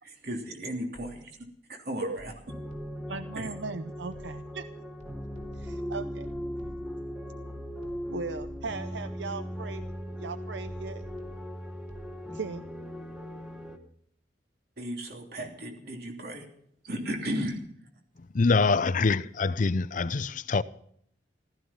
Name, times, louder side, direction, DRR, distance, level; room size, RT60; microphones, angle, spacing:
voice 1, 0.0-2.3 3.3-3.5 14.8-16.5 16.8-17.6, equal, 60° right, 3.1 m, -35 dB
sound 1, 0.9-1.5 2.2-3.2 4.1-4.6 5.0-7.1 7.8-8.9 9.8-10.3 10.7-12.2, equal, 40° right, 2.7 m, -52 dB
sound 2, 2.5-13.8, equal, 5° right, 1.4 m, -38 dB
voice 2, 3.1-4.6 5.6-6.3 8.1-9.9 10.2-11.0 12.3-12.6, right 4 dB, 75° right, 0.6 m, -37 dB
voice 3, 18.3-20.6, left 4 dB, 45° left, 0.5 m, -25 dB
15.5 x 14.0 x 5.6 m
head